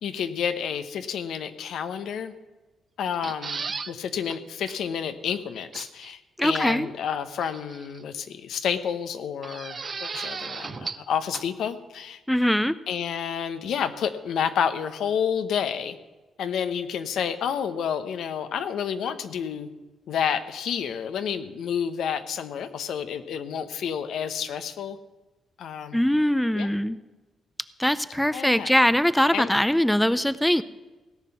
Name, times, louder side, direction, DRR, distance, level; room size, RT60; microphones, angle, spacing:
voice 1, 0.0-2.3 3.0-12.2 12.9-16.0 16.4-19.7 20.1-25.0 25.6-26.0 26.5-26.7 28.3-28.8 29.3-29.5, left 8 dB, 80° left, 10 dB, 0.9 m, -30 dB
sound 1, 3.1-3.9 4.3-4.4 4.7-4.8 5.7-6.1 7.4-8.0 9.4-11.1 11.3-11.4, right 5 dB, 40° right, 0.6 m, -35 dB
voice 2, 6.4-6.9 12.3-12.8 25.9-27.0 27.8-30.6, equal, 5° left, 15 dB, 0.5 m, -22 dB
17.0 x 5.9 x 9.5 m, 1.2 s
cardioid pair, 90°, 0 cm